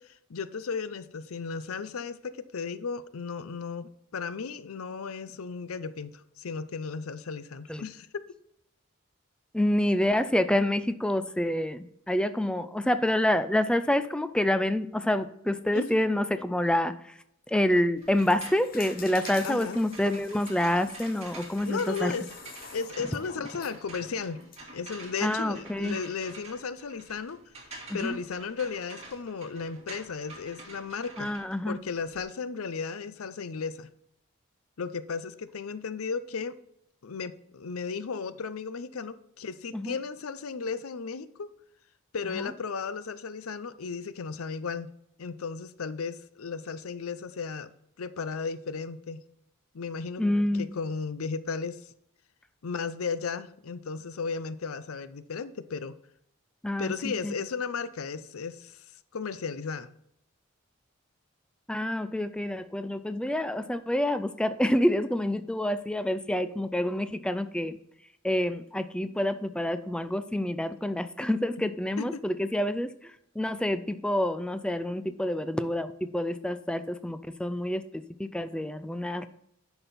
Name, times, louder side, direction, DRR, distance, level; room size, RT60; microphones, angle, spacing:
voice 1, 0.0-8.2 15.7-16.0 19.4-19.8 21.7-22.3 22.7-24.4 24.7-27.4 27.9-31.3 31.7-33.9 34.8-36.6 37.0-41.5 42.1-44.9 45.2-47.7 48.0-49.2 49.7-51.9 52.6-56.0 56.8-58.9 59.1-59.9 71.6-71.7 72.0-72.2, left 5 dB, 85° left, 0.6 m, -35 dB
voice 2, 9.5-16.9 17.5-22.1 25.2-26.0 27.9-28.2 31.2-31.8 39.7-39.9 42.4-42.5 50.2-50.7 56.6-57.3 61.7-67.8 68.2-72.9 73.4-79.3, left 1 dB, 5° left, 0.4 m, -27 dB
sound 1, 18.0-24.6, left 6 dB, 45° left, 0.9 m, -48 dB
sound 2, 18.0-32.2, right 2 dB, 30° right, 2.5 m, -47 dB
10.0 x 6.0 x 4.1 m
head